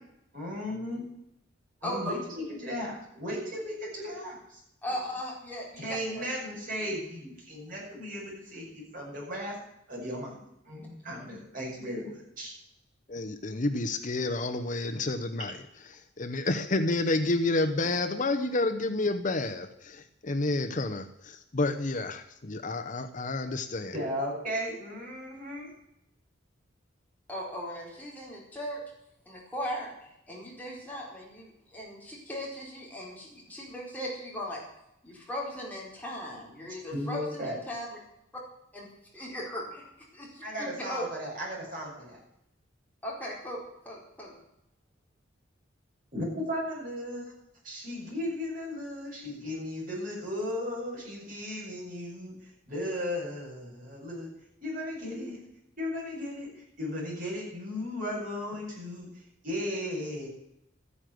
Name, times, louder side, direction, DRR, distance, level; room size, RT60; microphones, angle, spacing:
voice 1, 0.3-1.0 1.8-2.2 2.5-4.6 5.8-9.6 9.9-10.4 10.6-12.5 23.9-25.7 36.9-37.6 40.4-42.2 46.1-47.3 47.6-52.3 52.7-54.3 54.6-55.4 55.8-60.3, left 1 dB, 45° right, -3 dB, 7.8 m, -36 dB
voice 2, 1.8-2.1 4.8-5.8 27.3-28.8 29.3-29.9 30.3-34.6 35.0-37.9 38.7-38.9 39.1-39.8 40.1-41.1 43.0-44.4, equal, 10° left, -4 dB, 4.7 m, -38 dB
voice 3, 13.1-15.6 15.9-23.9, left 2 dB, 40° left, 7 dB, 0.9 m, -30 dB
14.0 x 9.9 x 7.7 m, 0.80 s
head